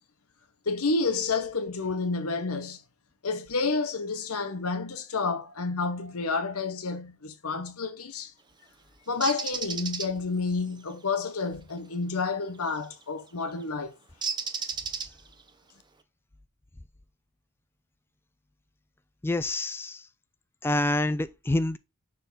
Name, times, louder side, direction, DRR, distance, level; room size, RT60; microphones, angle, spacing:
voice 1, 0.6-2.8 3.2-8.3 9.1-13.9, left 4 dB, 85° left, 1.1 m, -30 dB
Bird, 9.2-10.1 12.7-12.9 14.2-15.4, right 5 dB, 20° right, 0.7 m, -32 dB
voice 2, 19.2-20.0 20.6-21.8, left 2 dB, 10° left, 0.3 m, -27 dB
6.6 x 3.5 x 4.0 m
head